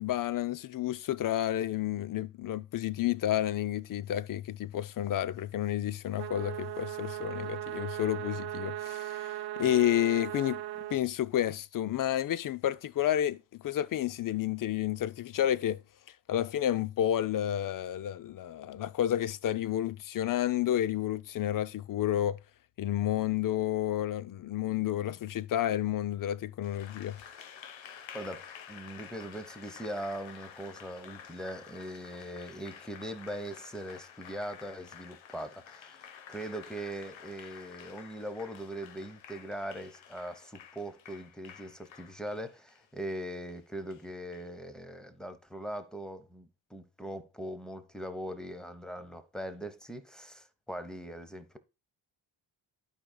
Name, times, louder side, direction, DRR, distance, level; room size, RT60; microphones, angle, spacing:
voice 1, 0.0-15.8 16.3-22.4 22.8-27.2, left 12 dB, 45° left, 0.5 m, -30 dB
sound 1, 6.2-11.0, right 14 dB, 60° right, 0.6 m, -38 dB
Applause, 26.6-44.4, left 8 dB, 75° left, 1.0 m, -50 dB
voice 2, 28.1-36.0 36.3-51.6, right 1 dB, ahead, 0.9 m, -41 dB
12.0 x 5.1 x 2.2 m
cardioid pair, 110°, 46 cm